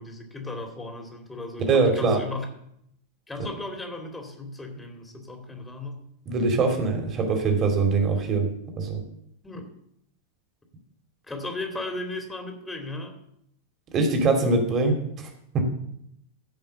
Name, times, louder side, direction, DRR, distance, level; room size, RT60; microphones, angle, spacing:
voice 1, 0.0-2.5 3.3-6.1 9.4-9.6 11.3-13.1, left 2 dB, 10° left, 3 dB, 2.3 m, -35 dB
voice 2, 1.7-2.2 6.3-8.5 8.8-9.0 13.9-15.6, right 3 dB, 30° right, 4 dB, 2.6 m, -23 dB
15.0 x 5.5 x 6.9 m, 0.74 s
figure-of-eight pair, 90°, 0 cm